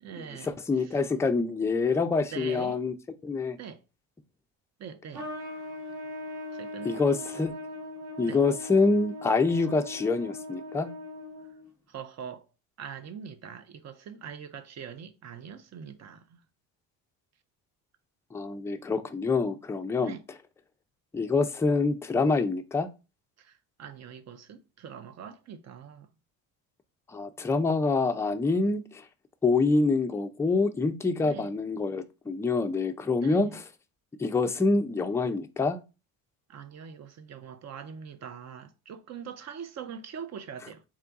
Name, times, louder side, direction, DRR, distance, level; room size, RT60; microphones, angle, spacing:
voice 1, 0.0-1.0 2.3-2.8 3.6-3.8 4.8-5.3 6.5-7.0 8.2-8.4 11.9-12.5 12.8-16.4 20.0-20.2 23.4-26.1 31.2-31.5 33.2-33.6 36.5-40.8, right 7 dB, 40° right, 0.6 m, -43 dB
voice 2, 0.7-2.9 3.2-3.6 6.8-7.5 8.2-10.9 18.3-20.1 21.1-22.9 27.1-29.0 29.4-33.6 34.2-35.8, left 3 dB, 5° left, 0.4 m, -26 dB
Trumpet, 5.1-11.7, left 1 dB, 80° right, 2.2 m, -40 dB
3.6 x 2.2 x 3.8 m
supercardioid pair, 85°, 40 cm